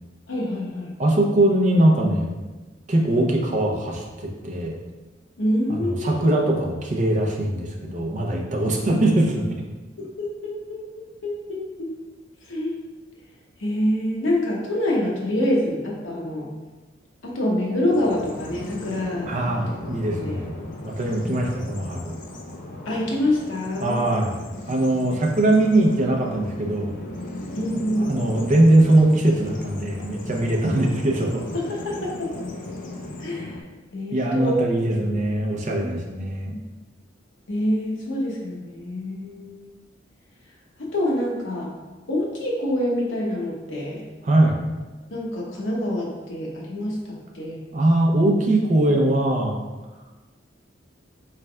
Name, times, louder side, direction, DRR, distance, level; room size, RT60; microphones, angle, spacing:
voice 1, 0.3-0.9 5.4-6.2 10.0-10.8 11.2-11.9 12.5-12.8 13.6-16.5 17.2-19.3 20.2-20.4 21.1-21.4 22.8-24.0 27.5-28.1 31.5-32.3 33.2-33.5 33.9-34.6 35.0-35.1 35.8-35.9 36.5-36.6 37.5-39.7 40.8-41.7 42.1-44.0 45.1-47.6, left 1 dB, 85° left, -3 dB, 0.8 m, -26 dB
voice 2, 1.0-2.3 2.9-4.8 5.7-9.5 19.3-20.5 20.8-22.2 23.8-24.4 24.7-27.0 28.0-31.4 34.1-36.5 44.2-44.6 47.7-49.6, right 1 dB, 40° right, 0 dB, 0.5 m, -21 dB
Bird vocalization bird call bird song, 17.9-33.6, left 2 dB, 45° left, 0.4 m, -36 dB
3.9 x 3.3 x 2.3 m, 1.2 s
head